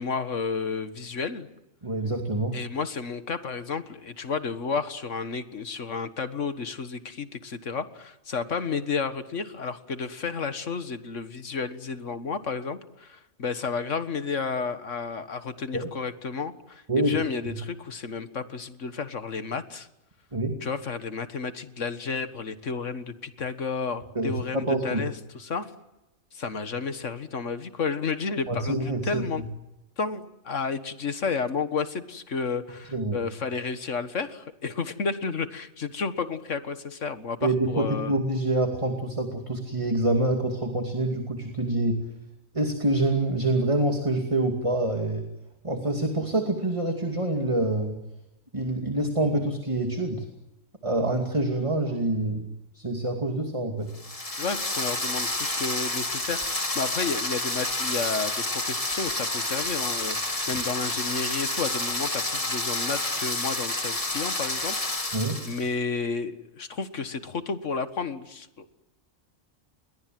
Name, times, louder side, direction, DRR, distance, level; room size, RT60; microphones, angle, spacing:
voice 1, 0.0-1.5 2.5-19.9 20.6-25.7 26.3-29.4 30.0-38.2 54.4-65.2 65.4-68.8, left 5 dB, 65° left, 11 dB, 1.9 m, -32 dB
voice 2, 1.8-2.6 15.7-15.9 16.9-17.2 17.5-17.6 20.3-20.6 24.1-25.0 28.5-29.2 32.9-33.2 37.4-42.0 42.5-45.3 45.6-48.0 48.5-50.3 50.8-52.5 52.7-53.9 60.5-60.6 65.1-65.4, right 2 dB, 25° right, 4 dB, 2.5 m, -26 dB
sound 1, 53.9-65.7, left 2 dB, 25° left, 2.5 m, -29 dB
29.5 x 22.5 x 7.7 m, 0.95 s
omnidirectional pair, 1.4 m